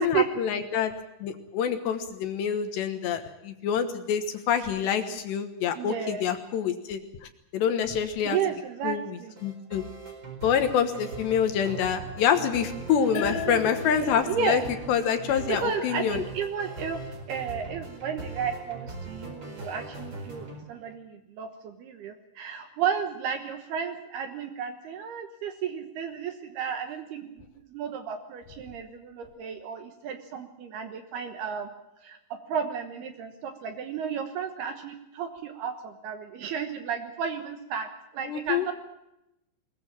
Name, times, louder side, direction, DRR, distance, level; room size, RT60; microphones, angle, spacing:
voice 1, 0.0-7.0 7.5-8.4 8.8-9.0 9.4-9.8 10.4-14.6 14.9-16.2 38.2-38.7, left 8 dB, 70° left, 8 dB, 3.1 m, -26 dB
voice 2, 5.8-6.3 8.2-9.4 13.1-13.6 14.3-14.7 15.3-31.7 32.0-37.9 38.1-38.7, right 7 dB, 65° right, 7 dB, 2.8 m, -33 dB
sound 1, 9.4-20.6, right 3 dB, 25° right, 4.6 m, -40 dB
sound 2, 13.1-16.3, left 10 dB, 50° left, 2.0 m, -38 dB
21.5 x 21.5 x 7.4 m, 0.87 s
omnidirectional pair, 5.8 m